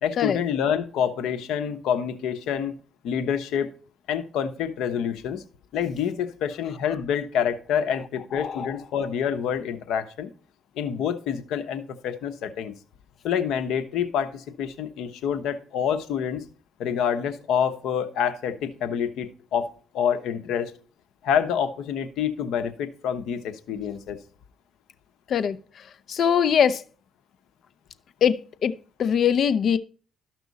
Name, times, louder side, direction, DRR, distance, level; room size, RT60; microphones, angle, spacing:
voice 1, 0.0-2.7 3.0-3.7 4.1-5.4 5.7-10.3 10.8-12.7 13.2-16.4 16.8-20.7 21.2-24.2, left 8 dB, 85° left, 1.0 m, -27 dB
voice 2, 8.3-8.8 25.3-25.6 26.1-26.8 28.2-29.8, left 8 dB, 60° left, 0.6 m, -22 dB
13.0 x 6.1 x 4.0 m
cardioid pair, 90°, 0 cm